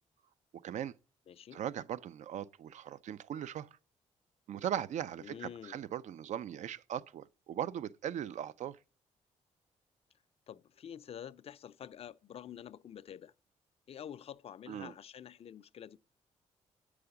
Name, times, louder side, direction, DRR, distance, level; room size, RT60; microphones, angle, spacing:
voice 1, 0.6-0.9 1.5-3.7 4.5-8.8 14.7-14.9, right 10 dB, 65° right, 0.5 m, -39 dB
voice 2, 1.3-1.6 5.2-5.8 10.5-13.3 13.9-16.0, left 9 dB, 50° left, 0.4 m, -48 dB
7.8 x 4.8 x 6.9 m
cardioid pair, 70°, 13 cm